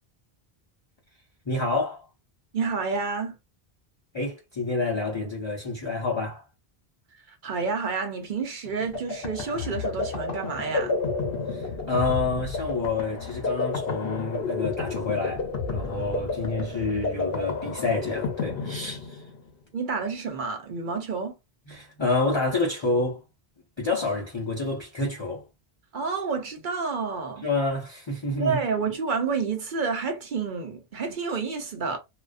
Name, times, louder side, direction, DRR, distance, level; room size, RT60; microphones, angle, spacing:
voice 1, 1.4-2.1 4.1-6.4 11.5-19.2 21.7-23.2 23.8-25.5 27.4-28.6, left 2 dB, 35° left, 0.5 m, -28 dB
voice 2, 2.5-3.4 7.3-10.9 19.7-21.4 25.9-27.4 28.4-32.0, right 5 dB, 55° right, 0.8 m, -29 dB
sound 1, 8.6-19.5, left 4 dB, 70° left, 0.9 m, -31 dB
2.3 x 2.3 x 2.4 m
omnidirectional pair, 1.0 m